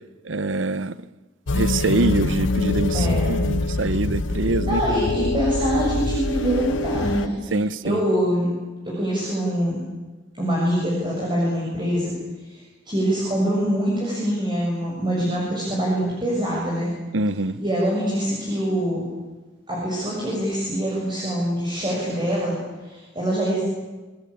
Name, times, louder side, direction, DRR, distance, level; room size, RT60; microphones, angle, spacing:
voice 1, 0.2-0.9 1.5-4.8 7.5-8.0 17.1-17.6, right 2 dB, 85° right, 0.9 m, -24 dB
sound 1, 1.5-7.3, left 2 dB, 80° left, 0.8 m, -24 dB
voice 2, 2.9-3.3 4.3-4.4 4.7-8.5 8.8-9.8 10.4-12.1 12.4-12.6 12.9-16.9 17.5-19.0 19.7-22.6 22.8-23.6, right 1 dB, 25° right, 7.1 m, -24 dB
27.0 x 20.5 x 8.7 m
head